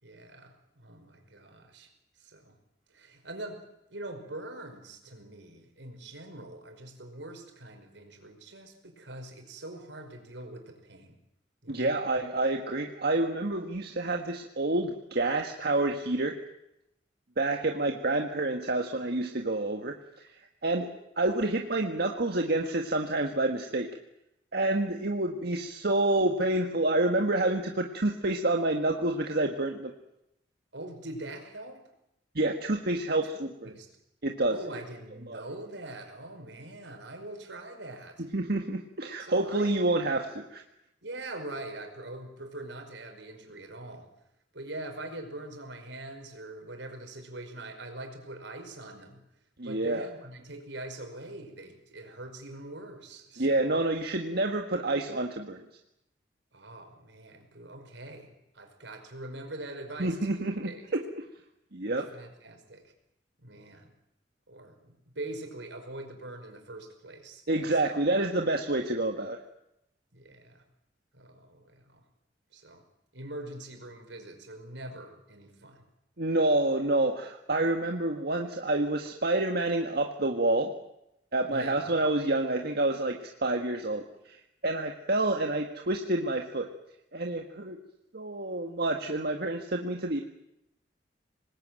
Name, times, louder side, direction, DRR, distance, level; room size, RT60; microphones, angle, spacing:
voice 1, 0.0-1.9 2.2-2.6 2.9-3.6 3.9-11.2 11.6-12.0 30.7-31.8 33.6-33.9 34.5-38.3 39.2-40.0 41.0-44.1 44.5-49.2 49.6-53.8 56.5-60.9 61.9-62.9 63.4-63.9 64.5-67.8 70.1-70.6 71.1-72.0 72.5-72.8 73.1-75.8 81.5-82.0, right 2 dB, 80° right, 5 dB, 5.4 m, -43 dB
voice 2, 11.7-16.3 17.4-19.9 20.6-20.9 21.2-23.9 24.5-29.9 32.3-33.5 34.2-34.6 35.3-35.4 38.3-40.6 49.6-50.1 53.4-55.6 60.0-61.0 61.7-62.1 67.5-69.4 76.2-80.7 81.3-86.7 87.1-87.8 88.1-90.2, right 2 dB, 60° right, 3 dB, 1.8 m, -28 dB
25.5 x 20.0 x 9.1 m, 0.83 s
head